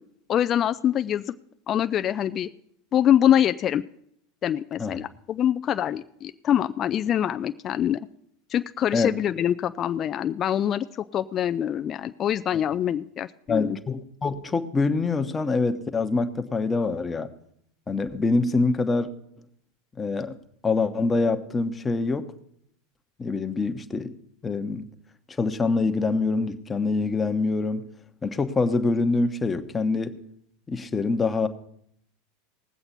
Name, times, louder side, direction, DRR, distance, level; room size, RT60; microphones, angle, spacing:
voice 1, 0.3-1.3 1.7-2.5 2.9-3.8 4.4-8.0 8.5-13.8, left 10 dB, 35° left, 11 dB, 0.4 m, -24 dB
voice 2, 13.5-17.3 17.9-19.1 20.0-20.3 20.6-22.3 23.2-24.1 24.4-24.9 25.4-27.8 28.2-30.2 30.7-31.5, left 3 dB, 20° left, 8 dB, 1.0 m, -25 dB
19.0 x 7.8 x 4.2 m, 0.71 s
hypercardioid pair, 85°, 0 cm